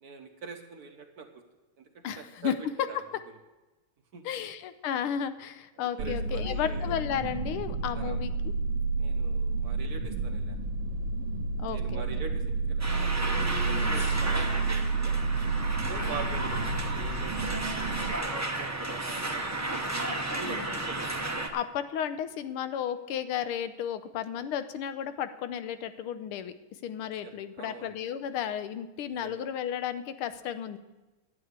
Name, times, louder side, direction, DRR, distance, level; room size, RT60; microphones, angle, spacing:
voice 1, 0.0-1.4 1.8-2.6 2.9-3.0 4.1-4.3 5.8-7.0 7.9-8.2 9.0-10.6 11.7-15.1 15.9-20.0 20.4-21.1 27.1-28.0 29.0-29.3, right 5 dB, 55° right, 5 dB, 1.3 m, -44 dB
voice 2, 2.0-2.5 4.2-8.5 11.6-12.1 13.6-14.0 16.0-16.3 20.4-20.8 21.5-30.8, left 9 dB, 90° left, 11 dB, 1.6 m, -34 dB
sound 1, 6.0-18.1, right 3 dB, 80° right, 1.7 m, -30 dB
sound 2, 12.8-21.5, right 2 dB, 20° right, 0.4 m, -33 dB
11.5 x 8.8 x 8.0 m, 1.1 s
omnidirectional pair, 2.3 m